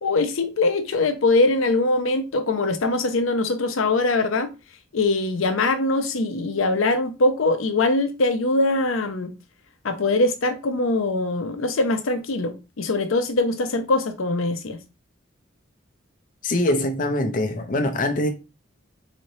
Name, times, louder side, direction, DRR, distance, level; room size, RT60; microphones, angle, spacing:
voice 1, 0.0-4.5 4.9-9.3 9.8-14.8, left 2 dB, 85° left, 0.6 m, -22 dB
voice 2, 16.4-18.3, left 1 dB, 40° left, 0.5 m, -23 dB
4.0 x 3.1 x 2.7 m
head